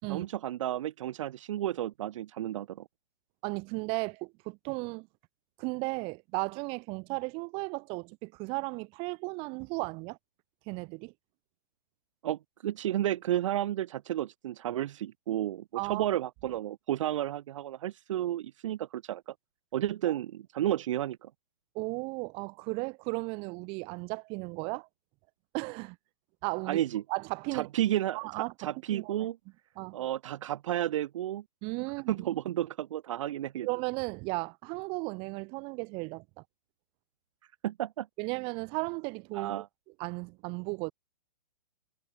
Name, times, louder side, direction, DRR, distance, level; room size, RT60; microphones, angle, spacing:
voice 1, 0.1-2.9 12.2-19.3 19.7-21.3 26.7-27.0 27.5-29.4 29.9-31.4 32.1-33.7 37.6-38.1 39.3-39.7, right 12 dB, 50° right, 1.8 m, -32 dB
voice 2, 3.4-5.1 5.6-10.2 10.7-11.1 15.7-16.0 20.1-20.2 21.7-24.9 25.5-26.0 26.4-26.8 27.1-27.7 28.1-29.1 29.8-30.0 31.6-32.2 33.6-36.2 38.2-39.6 40.0-40.9, right 29 dB, 25° right, 3.2 m, -35 dB
hypercardioid pair, 160°, 21 cm